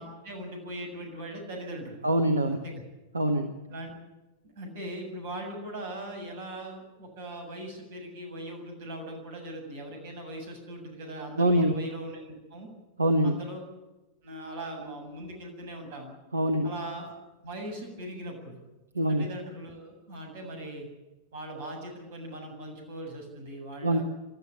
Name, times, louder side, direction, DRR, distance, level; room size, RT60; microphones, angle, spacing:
voice 1, 0.0-2.1 2.5-2.8 3.7-3.9 4.6-12.7 13.2-13.6 14.2-16.1 16.6-17.1 17.4-18.6 19.1-20.9 21.3-24.0, right 1 dB, 55° right, 3 dB, 7.5 m, -40 dB
voice 2, 2.0-2.6 3.1-3.5 11.4-11.7 13.0-13.4 16.3-16.7 18.9-19.2 23.8-24.0, right 1 dB, 75° right, 7 dB, 1.5 m, -24 dB
25.0 x 13.5 x 10.0 m, 1.1 s
figure-of-eight pair, 90°, 0 cm